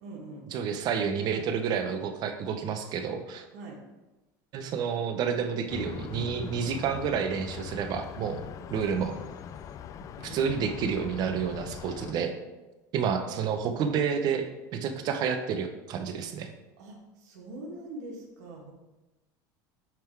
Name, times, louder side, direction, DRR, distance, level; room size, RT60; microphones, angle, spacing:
voice 1, 0.0-0.5 3.5-3.8 10.3-10.5 13.2-13.4 16.8-18.7, right 2 dB, 85° right, -1 dB, 2.0 m, -43 dB
voice 2, 0.5-3.4 4.5-8.4 8.7-9.2 10.2-12.3 12.9-16.5, right 7 dB, 45° right, 7 dB, 0.9 m, -29 dB
sound 1, 5.7-12.1, left 8 dB, 35° left, 0.4 m, -41 dB
9.0 x 3.7 x 4.6 m, 1.1 s
supercardioid pair, 135°, 9 cm